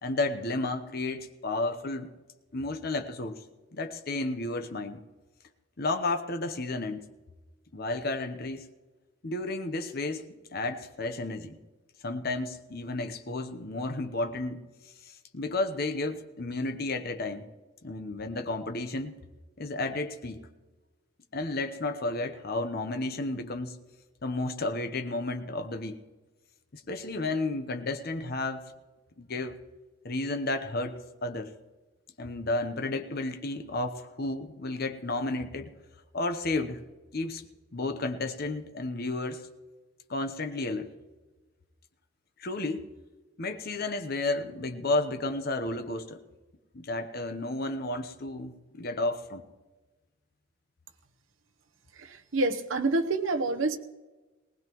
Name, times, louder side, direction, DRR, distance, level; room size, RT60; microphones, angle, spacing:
voice 1, 0.0-2.1 2.5-3.4 3.7-5.0 5.8-7.1 7.7-8.7 9.2-11.6 12.0-14.6 15.0-17.5 17.8-19.2 19.6-20.4 21.3-23.8 24.2-26.0 26.7-28.7 29.2-29.6 30.0-31.5 32.2-35.7 36.1-36.8 37.1-37.4 37.7-39.5 40.1-40.9 42.4-42.9 43.4-46.2 46.7-49.4, left 2 dB, 50° left, 8 dB, 0.9 m, -32 dB
voice 2, 52.0-53.8, right 2 dB, 70° right, 7 dB, 1.0 m, -27 dB
19.5 x 18.5 x 3.1 m, 1.2 s
head